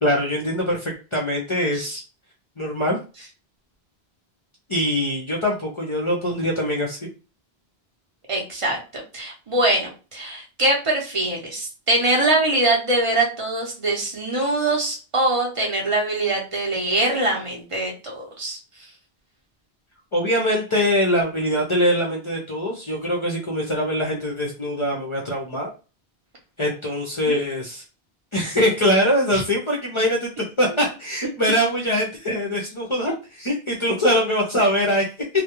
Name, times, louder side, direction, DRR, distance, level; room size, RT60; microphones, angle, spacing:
voice 1, 0.0-2.0 2.6-3.0 4.7-7.1 20.1-25.7 26.6-27.8 28.3-30.3 30.6-33.1 33.4-35.0, equal, 40° left, -2 dB, 0.5 m, -23 dB
voice 2, 8.3-18.6 27.3-27.4 29.3-29.4 30.7-30.8, right 2 dB, 35° right, -1 dB, 0.6 m, -23 dB
2.3 x 2.1 x 2.9 m, 0.33 s
omnidirectional pair, 1.0 m